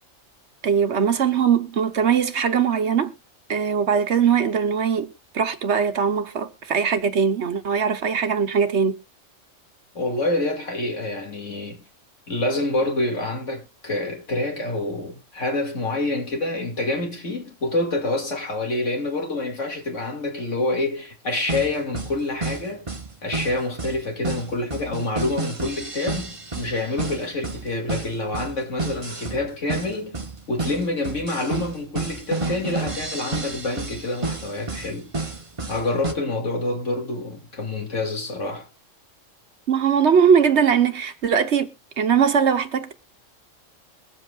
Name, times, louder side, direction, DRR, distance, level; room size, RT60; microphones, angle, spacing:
voice 1, 0.6-3.1 3.5-9.0 39.7-41.7 42.0-42.9, right 7 dB, 60° right, 1.2 m, -20 dB
voice 2, 9.9-11.8 12.3-22.9 23.2-30.2 30.5-35.1 35.7-38.7, left 2 dB, 70° left, 2.8 m, -27 dB
sound 1, 21.5-36.1, right 3 dB, 25° right, 1.1 m, -31 dB
22.0 x 7.7 x 2.5 m
omnidirectional pair, 1.3 m